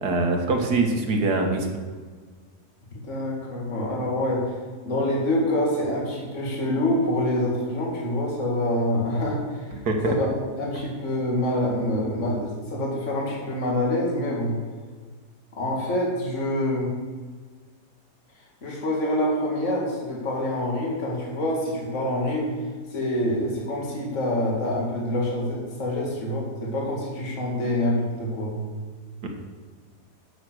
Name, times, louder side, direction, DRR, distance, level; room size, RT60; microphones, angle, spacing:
voice 1, 0.0-1.7 9.9-10.1 29.2-29.3, right 3 dB, 70° right, 3 dB, 2.0 m, -23 dB
voice 2, 2.9-4.4 4.8-9.7 10.0-10.3 10.6-14.5 15.6-16.9 18.6-22.5 22.9-28.6, left 1 dB, 45° left, -3 dB, 2.6 m, -26 dB
11.0 x 7.0 x 6.3 m, 1.5 s
omnidirectional pair, 1.8 m